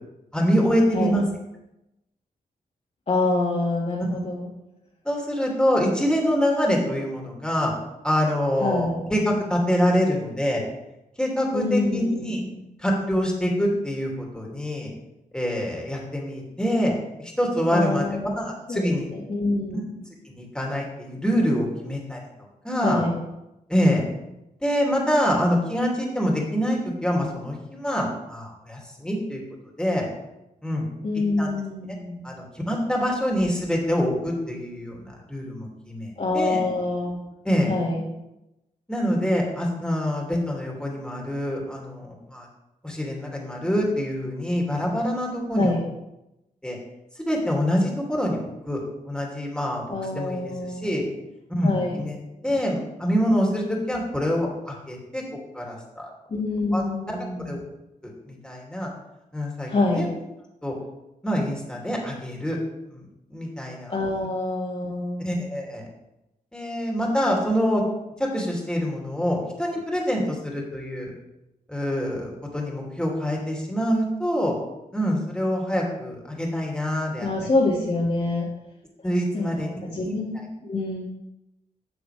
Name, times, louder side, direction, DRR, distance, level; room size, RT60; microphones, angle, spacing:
voice 1, 0.3-1.2 4.1-4.2 5.0-7.7 8.0-10.6 11.2-12.4 12.8-14.9 15.3-18.1 18.4-19.1 19.7-19.8 20.2-22.2 22.6-23.0 23.7-24.0 24.6-29.4 29.8-30.0 30.6-30.8 31.4-31.5 32.2-36.6 37.4-37.7 38.9-42.5 42.8-45.7 46.6-46.8 47.2-48.4 48.6-48.8 49.0-49.9 50.1-51.0 51.5-52.2 52.4-55.2 55.5-56.1 56.7-56.8 57.1-57.2 57.4-57.6 58.0-58.9 59.3-60.1 60.6-60.7 61.2-62.6 62.9-63.0 63.3-63.9 65.2-65.8 66.5-67.8 68.2-71.1 71.7-74.6 74.9-77.3 79.0-79.7 80.0-80.1, equal, 5° left, -2 dB, 2.7 m, -25 dB
voice 2, 3.1-4.5 8.6-9.0 11.5-12.5 17.7-18.3 18.7-19.8 22.8-23.1 31.0-32.3 36.2-37.2 37.7-38.0 45.5-45.8 49.9-51.0 51.6-52.0 56.3-57.6 59.7-60.1 63.9-65.2 77.2-78.5 79.3-81.0, left 2 dB, 45° left, -5 dB, 2.0 m, -26 dB
10.5 x 6.8 x 3.4 m, 0.92 s
cardioid pair, 70°, 15 cm